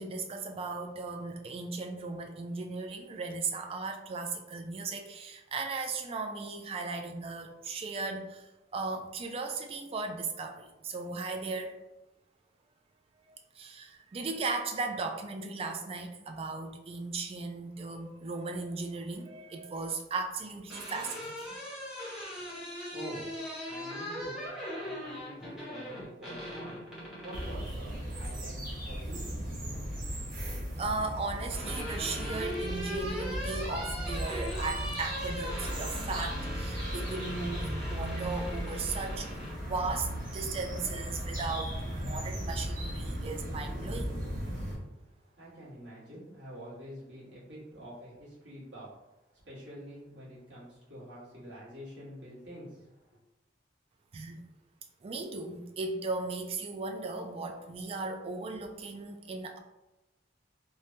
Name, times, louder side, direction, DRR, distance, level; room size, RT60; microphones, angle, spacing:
voice 1, 0.0-11.8 13.3-21.5 30.5-39.4 39.6-44.1 54.1-54.4 55.0-59.6, right 3 dB, 30° right, 4 dB, 0.3 m, -37 dB
sound 1, 20.4-27.6 29.1-29.8 31.0-39.6, equal, 5° right, 0.6 m, -40 dB
voice 2, 22.6-23.3 23.6-24.4 24.8-26.8 27.2-28.6 28.9-29.4 45.4-48.9 49.4-53.2, right 1 dB, 70° right, -9 dB, 1.4 m, -46 dB
sound 2, 27.3-44.8, equal, 45° right, 0.8 m, -36 dB
3.1 x 2.2 x 2.7 m, 0.98 s
head